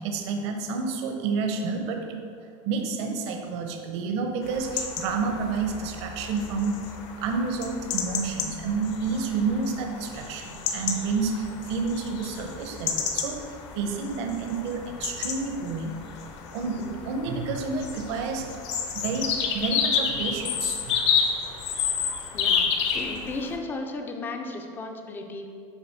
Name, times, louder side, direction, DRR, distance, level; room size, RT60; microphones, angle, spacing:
voice 1, 0.0-2.2 2.7-6.8 7.2-13.5 13.8-16.0 16.5-18.5 18.9-21.0, right 4 dB, 55° right, 4 dB, 0.8 m, -29 dB
sound 1, 4.4-23.5, left 6 dB, 60° left, 0.9 m, -31 dB
voice 2, 22.3-25.5, left 2 dB, 10° left, 4 dB, 0.4 m, -35 dB
7.2 x 4.1 x 5.8 m, 2.3 s
supercardioid pair, 180°, 17 cm